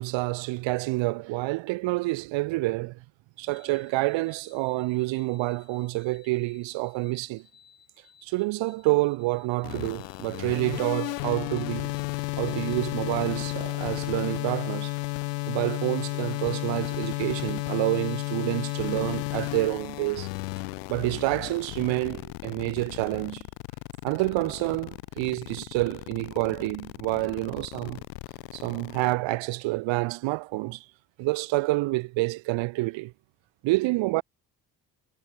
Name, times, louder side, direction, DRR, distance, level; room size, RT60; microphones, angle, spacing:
voice 1, 0.0-3.0 3.4-7.4 8.2-11.9 12.4-14.9 15.5-20.3 20.9-23.4 24.0-28.0 28.5-30.8 31.2-33.1 33.6-34.2, right 21 dB, 65° right, 1.3 m, -28 dB
sound 1, 3.4-20.6, left 7 dB, 45° left, 7.3 m, -60 dB
sound 2, 9.6-29.1, left 31 dB, 75° left, 0.7 m, -33 dB
hypercardioid pair, 50°, 49 cm